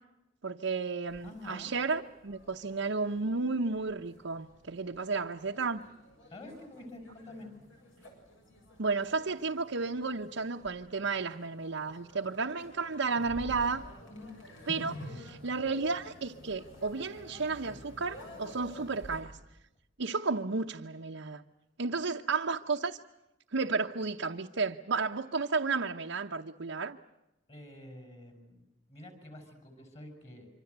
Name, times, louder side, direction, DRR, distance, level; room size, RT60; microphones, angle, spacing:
voice 1, 0.4-5.9 8.8-13.8 14.7-19.4 20.0-21.4 21.8-23.0 23.5-27.0, right 4 dB, 75° right, 2 dB, 0.9 m, -33 dB
sound 1, 1.1-19.2, equal, 80° left, 7.6 m, -50 dB
voice 2, 1.2-1.7 6.3-7.5 14.1-14.3 22.0-22.1 27.5-28.6 28.9-30.5, left 1 dB, 35° left, 5 dB, 5.8 m, -48 dB
25.5 x 25.5 x 8.1 m, 0.94 s
head